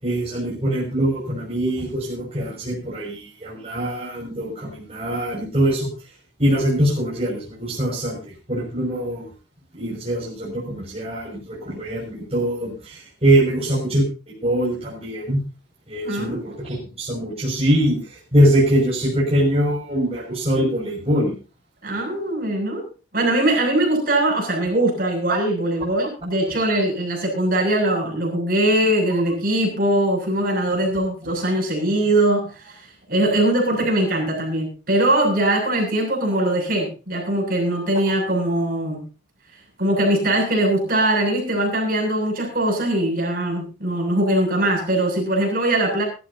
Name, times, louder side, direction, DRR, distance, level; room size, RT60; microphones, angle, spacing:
voice 1, 0.0-5.9 6.4-8.2 8.5-9.2 9.8-12.7 13.2-14.0 14.4-15.4 15.9-16.5 17.0-18.0 18.3-21.3 25.3-25.4, right 1 dB, 30° right, -5 dB, 6.2 m, -22 dB
voice 2, 16.0-16.4 21.8-22.9 23.1-39.0 39.8-46.0, right 1 dB, 50° right, 1 dB, 7.5 m, -21 dB
23.0 x 13.0 x 2.8 m, 0.33 s
head